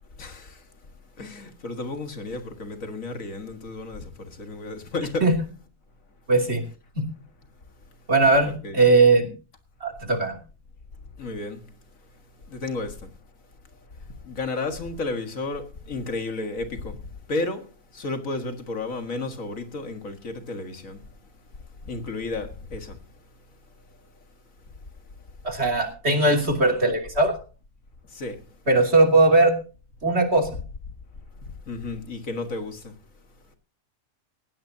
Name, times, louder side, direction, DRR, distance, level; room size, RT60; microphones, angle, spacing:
voice 1, 0.2-0.6 1.2-5.3 8.4-8.8 11.2-11.7 12.5-13.1 14.2-17.0 17.3-17.7 17.9-21.0 21.9-23.0 28.1-28.4 31.7-32.9, left 3 dB, 65° left, 2.2 m, -32 dB
voice 2, 6.3-6.6 6.9-7.1 8.1-9.3 9.8-10.4 25.4-27.3 28.7-29.5 30.0-30.5, right 2 dB, 45° right, 3.3 m, -19 dB
18.5 x 16.5 x 2.8 m
omnidirectional pair, 1.5 m